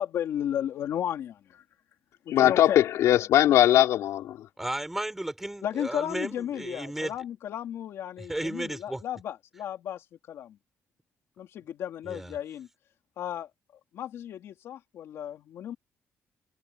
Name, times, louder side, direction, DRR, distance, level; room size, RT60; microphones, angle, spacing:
voice 1, 0.0-1.6 2.2-2.8 5.6-10.0 10.3-10.6 11.4-12.7 13.2-13.5 13.9-15.8, left 10 dB, 60° left, 3.1 m, -34 dB
voice 2, 2.3-4.4, left 12 dB, 75° left, 4.5 m, -20 dB
voice 3, 4.6-7.2 8.2-9.0 12.0-12.4, right 1 dB, 5° right, 5.5 m, -34 dB
cardioid pair, 180°, 5 cm